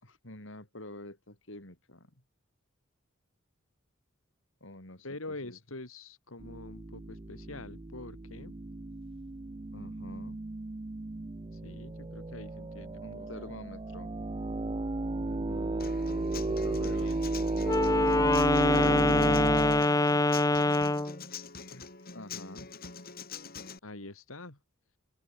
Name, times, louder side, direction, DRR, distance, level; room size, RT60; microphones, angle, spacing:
voice 1, 0.0-2.2 4.6-5.6 9.7-10.4 13.0-14.1 16.3-17.2 21.7-22.7, left 1 dB, 65° left, 5.3 m, -48 dB
voice 2, 5.0-8.5 11.5-13.3 15.2-16.0 16.7-17.2 23.8-24.6, left 2 dB, 85° left, 3.3 m, -45 dB
sound 1, 6.4-19.8, right 2 dB, 25° right, 0.5 m, -34 dB
Human voice / Acoustic guitar, 15.8-23.8, left 5 dB, 45° left, 5.0 m, -44 dB
Wind instrument woodwind instrument, 17.6-21.2, left 2 dB, 15° left, 0.9 m, -25 dB
head